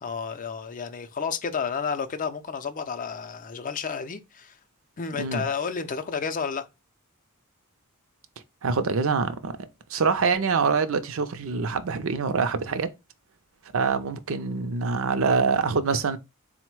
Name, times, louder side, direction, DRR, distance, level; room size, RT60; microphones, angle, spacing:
voice 1, 0.0-4.6 5.0-6.7 12.7-12.8, left 6 dB, 40° left, 0.5 m, -31 dB
voice 2, 8.6-9.6 9.9-12.9 13.7-16.2, right 5 dB, 65° right, 0.5 m, -25 dB
4.0 x 2.1 x 4.5 m
head